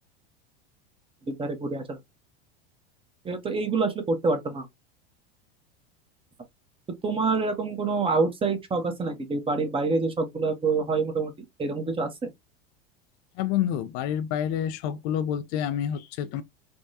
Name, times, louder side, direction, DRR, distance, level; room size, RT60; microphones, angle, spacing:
voice 1, 1.3-2.0 3.2-4.6 7.0-11.3 11.6-12.3, right 4 dB, 15° right, 0.8 m, -26 dB
voice 2, 13.4-16.4, left 10 dB, 50° left, 0.4 m, -28 dB
3.5 x 2.2 x 2.5 m
hypercardioid pair, 105°, 31 cm